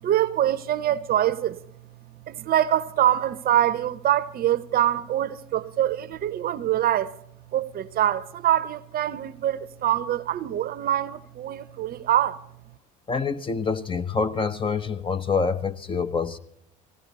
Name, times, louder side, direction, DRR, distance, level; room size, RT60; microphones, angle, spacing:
voice 1, 0.0-1.6 2.3-7.1 7.5-12.4, right 12 dB, 45° right, 0.8 m, -24 dB
voice 2, 13.1-16.4, left 5 dB, 25° left, 0.9 m, -26 dB
19.5 x 16.5 x 4.1 m
supercardioid pair, 85°, 20 cm